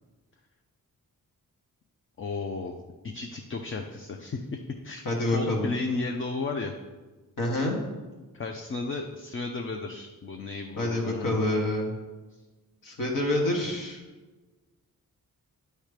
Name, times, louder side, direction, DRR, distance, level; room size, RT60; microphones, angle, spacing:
voice 1, 2.2-2.8 3.0-5.0 5.3-6.7 8.3-11.4, left 3 dB, 35° left, 4 dB, 0.5 m, -34 dB
voice 2, 5.0-5.7 7.4-7.8 10.8-11.9 12.8-14.0, left 1 dB, 65° left, -1 dB, 1.6 m, -27 dB
9.4 x 3.2 x 5.0 m, 1.2 s
wide cardioid pair, 135°, 35 cm